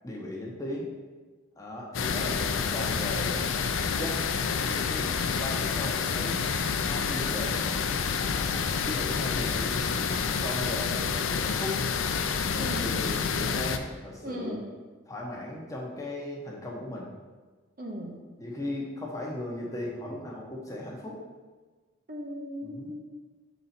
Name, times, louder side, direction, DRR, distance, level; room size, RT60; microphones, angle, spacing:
voice 1, 0.0-0.9 1.6-4.2 4.6-6.4 6.8-7.7 8.1-11.8 12.4-14.6 15.1-17.1 18.4-21.2 22.6-22.9, left 1 dB, 15° left, -3 dB, 0.9 m, -37 dB
sound 1, 1.9-13.8, left 6 dB, 80° left, 0.5 m, -28 dB
voice 2, 14.2-14.7 17.8-18.2 22.1-23.0, equal, 45° right, 0 dB, 0.9 m, -37 dB
7.0 x 4.1 x 4.3 m, 1.4 s
head